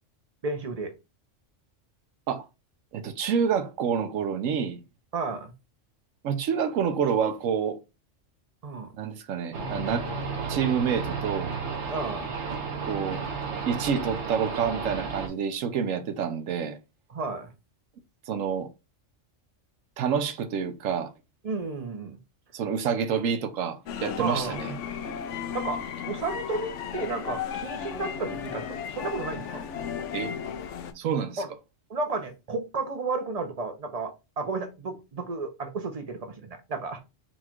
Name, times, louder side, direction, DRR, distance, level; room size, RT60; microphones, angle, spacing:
voice 1, 0.4-0.9 5.1-5.5 8.6-8.9 11.9-12.3 17.1-17.5 21.4-22.2 24.2-24.6 25.5-25.8 26.1-29.6 31.4-31.5 31.9-37.0, right 3 dB, 35° right, 0.7 m, -32 dB
voice 2, 2.9-4.8 6.2-7.8 8.9-10.1 10.5-11.5 12.8-13.2 13.7-16.8 18.3-18.7 20.0-21.1 22.5-24.8 30.1-30.3 30.9-31.4, right 7 dB, 85° right, 1.1 m, -28 dB
sound 1, 9.5-15.3, right 4 dB, 65° right, 1.4 m, -33 dB
sound 2, 23.9-30.9, left 7 dB, 75° left, 0.9 m, -35 dB
4.4 x 2.4 x 4.3 m
omnidirectional pair, 1.3 m